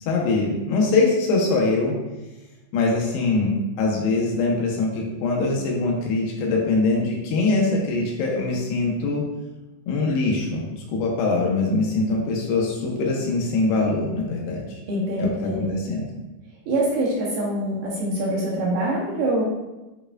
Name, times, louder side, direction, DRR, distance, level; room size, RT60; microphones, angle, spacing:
voice 1, 0.1-1.9 2.7-3.5 3.8-9.2 9.9-14.7 15.2-16.1, left 3 dB, 75° left, -2 dB, 2.7 m, -23 dB
voice 2, 14.9-15.7 16.7-19.4, right 1 dB, 75° right, -4 dB, 2.4 m, -24 dB
10.5 x 4.7 x 2.4 m, 1.0 s
omnidirectional pair, 5.6 m